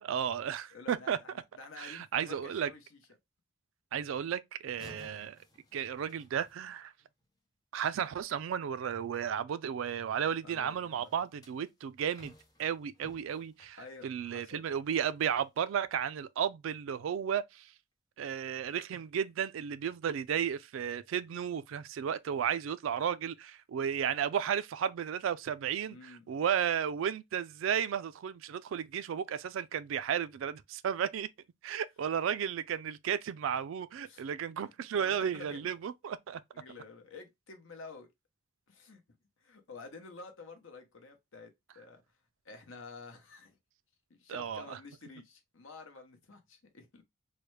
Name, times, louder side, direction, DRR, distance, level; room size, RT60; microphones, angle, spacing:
voice 1, 0.0-1.2 1.8-2.7 3.9-5.4 5.7-6.9 7.7-12.3 12.6-13.8 14.0-17.7 18.2-31.3 31.6-36.4 44.3-44.8, right 8 dB, 75° right, 0.3 m, -33 dB
voice 2, 0.7-3.0 10.4-11.1 13.8-14.6 25.9-26.3 34.1-34.3 35.0-35.7 36.5-38.1 38.7-39.0 39.4-42.0 42.4-43.6 44.1-47.0, left 4 dB, 70° left, 0.8 m, -50 dB
sound 1, 4.7-7.2 11.0-14.8 15.2-15.4 16.0-16.1, left 1 dB, 20° left, 0.6 m, -58 dB
3.2 x 2.2 x 3.1 m
head